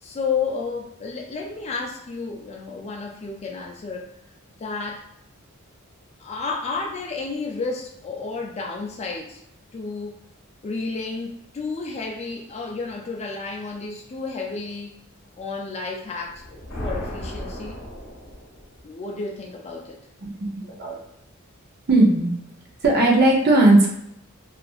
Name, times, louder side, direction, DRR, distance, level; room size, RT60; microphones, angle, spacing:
voice 1, 0.0-4.1 4.6-5.0 6.2-9.4 9.7-10.2 10.6-14.9 15.4-17.8 18.8-20.0, left 4 dB, 30° left, 0 dB, 0.3 m, -31 dB
sound 1, 16.2-18.9, equal, 60° left, 0.8 m, -35 dB
voice 2, 20.2-21.0 21.9-22.3 22.8-23.9, right 2 dB, 45° right, -1 dB, 0.6 m, -17 dB
2.8 x 2.4 x 2.4 m, 0.76 s
head